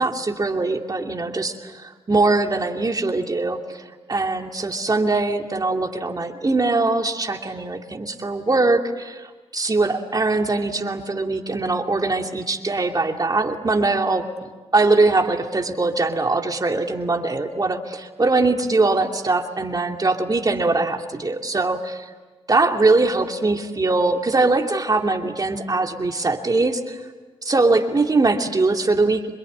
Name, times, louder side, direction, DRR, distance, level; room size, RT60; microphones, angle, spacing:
voice 1, 0.0-3.8 4.1-22.1 22.5-27.0 27.4-29.3, right 3 dB, 35° right, 3 dB, 2.8 m, -22 dB
27.0 x 22.0 x 9.8 m, 1.3 s
cardioid pair, 65°, 11 cm